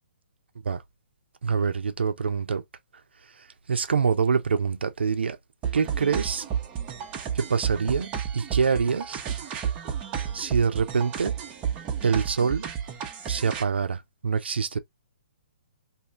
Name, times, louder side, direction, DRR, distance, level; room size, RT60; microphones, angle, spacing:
voice 1, 1.4-2.6 3.4-5.4 5.7-6.5 7.3-9.2 10.3-11.3 12.0-12.7 13.3-14.8, right 5 dB, 90° right, 0.6 m, -25 dB
sound 1, 5.6-13.6, right 8 dB, 20° right, 0.7 m, -31 dB
2.6 x 2.5 x 3.5 m
hypercardioid pair, 155°, 6 cm